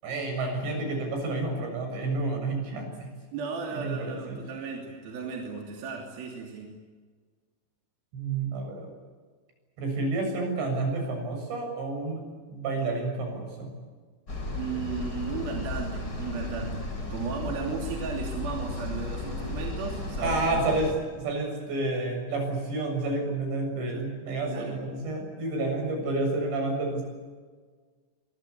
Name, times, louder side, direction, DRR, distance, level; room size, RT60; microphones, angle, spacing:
voice 1, 0.0-3.1 3.7-4.4 8.1-8.9 9.8-12.2 12.5-13.7 20.2-27.0, right 2 dB, 75° right, 3 dB, 9.5 m, -30 dB
voice 2, 3.3-6.8 14.6-20.6 24.5-24.8, right 5 dB, 60° right, 0 dB, 4.7 m, -35 dB
sound 1, 14.3-20.9, left 2 dB, 25° left, 4.4 m, -34 dB
24.5 x 23.5 x 8.5 m, 1.5 s
omnidirectional pair, 5.1 m